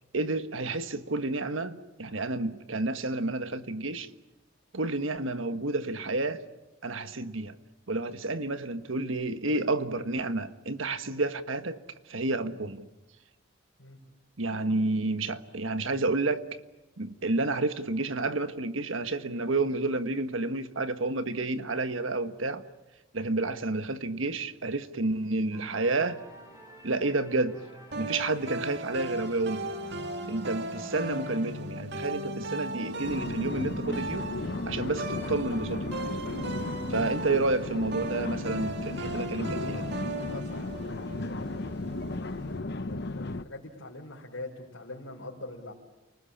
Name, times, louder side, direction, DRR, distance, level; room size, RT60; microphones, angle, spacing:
voice 1, 0.1-4.1 4.7-6.4 6.8-7.6 7.9-11.8 12.1-12.9 14.4-16.5 17.0-22.6 23.1-26.2 26.8-27.6 28.0-29.7 30.3-34.3 34.6-35.9 36.9-39.9, right 2 dB, 80° right, 1.5 m, -30 dB
sound 1, 25.5-32.1, right 1 dB, 15° right, 7.8 m, -51 dB
sound 2, 27.9-42.6, right 1 dB, 60° right, 1.8 m, -37 dB
sound 3, 33.0-43.4, left 2 dB, 55° left, 0.8 m, -35 dB
voice 2, 40.3-41.9 42.6-45.7, left 2 dB, 85° left, 4.8 m, -44 dB
30.0 x 19.5 x 8.7 m
head